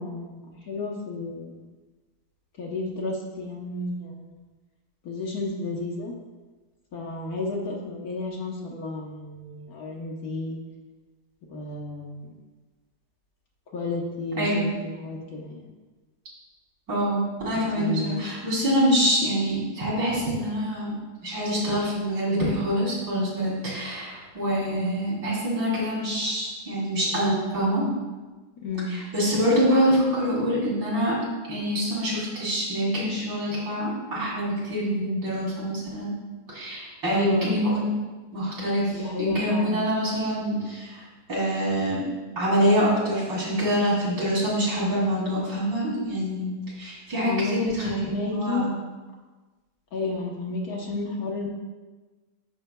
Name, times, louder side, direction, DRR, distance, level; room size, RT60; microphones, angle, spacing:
voice 1, 0.0-1.6 2.6-4.3 5.0-6.1 6.9-10.6 11.5-12.3 13.7-15.7 17.5-18.3 24.6-24.9 28.6-28.9 37.1-37.5 38.9-39.8 47.2-48.7 49.9-51.5, left 3 dB, 60° left, -1 dB, 1.3 m, -31 dB
voice 2, 14.4-14.7 16.9-20.9 21.2-27.8 28.9-31.1 31.5-36.1 36.5-37.9 38.3-41.0 41.3-42.0 42.4-46.5 46.8-48.0 48.3-48.7, equal, 70° right, -7 dB, 3.3 m, -25 dB
10.0 x 6.2 x 2.2 m, 1.3 s
omnidirectional pair, 2.0 m